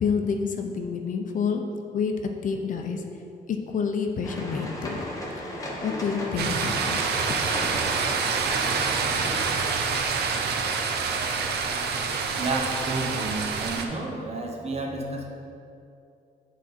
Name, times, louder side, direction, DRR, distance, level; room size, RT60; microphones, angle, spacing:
voice 1, 0.0-1.6 1.9-2.1 2.4-3.0 3.5-5.1 5.4-5.5 5.8-7.4, left 6 dB, 50° left, 4 dB, 0.6 m, -28 dB
sound 1, 4.2-9.6, left 1 dB, 20° left, 1.0 m, -35 dB
sound 2, 6.4-13.9, right 5 dB, 85° right, 0.6 m, -27 dB
voice 2, 12.4-15.3, right 2 dB, 40° right, 1 dB, 0.9 m, -30 dB
8.6 x 4.1 x 4.2 m, 2.7 s
cardioid pair, 140°, 17 cm